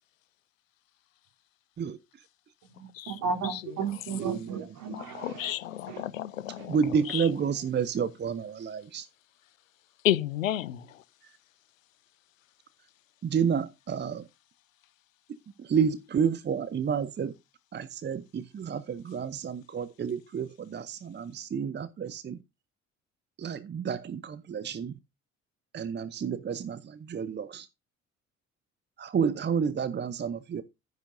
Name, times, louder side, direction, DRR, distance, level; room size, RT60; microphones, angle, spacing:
voice 1, 2.6-5.5 5.9-6.0 6.6-6.7, right 5 dB, 60° right, 3.5 m, -34 dB
voice 2, 4.2-4.5 6.7-9.1 13.2-14.3 15.6-17.3 17.7-22.4 23.4-24.9 25.7-27.7 29.0-30.6, right 7 dB, 25° right, 0.7 m, -30 dB
voice 3, 4.9-6.8 7.1-7.3 10.0-11.0, left 12 dB, 80° left, 0.6 m, -31 dB
11.0 x 9.9 x 2.7 m
figure-of-eight pair, 50°, 39 cm